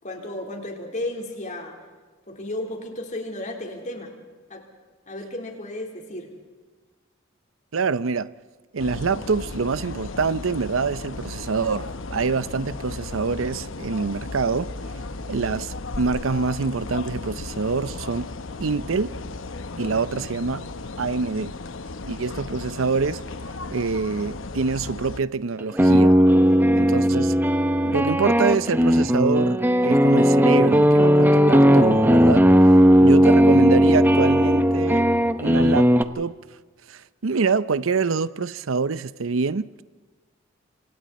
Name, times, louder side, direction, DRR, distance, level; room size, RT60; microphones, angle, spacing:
voice 1, 0.0-1.8 2.3-4.2 4.5-4.7 5.1-6.3, left 1 dB, 40° left, 3.8 m, -33 dB
voice 2, 7.7-8.3 8.7-14.7 15.3-18.3 18.6-19.1 19.8-20.7 21.0-21.5 22.0-23.2 23.7-26.2 26.7-27.4 27.8-32.5 33.0-35.1 35.4-35.9 36.2-36.4 36.9-39.8, right 4 dB, 80° right, 0.6 m, -25 dB
sound 1, 8.8-25.2, left 3 dB, 70° left, 0.9 m, -35 dB
sound 2, 25.6-36.0, equal, 10° right, 0.9 m, -17 dB
28.0 x 26.0 x 4.2 m
head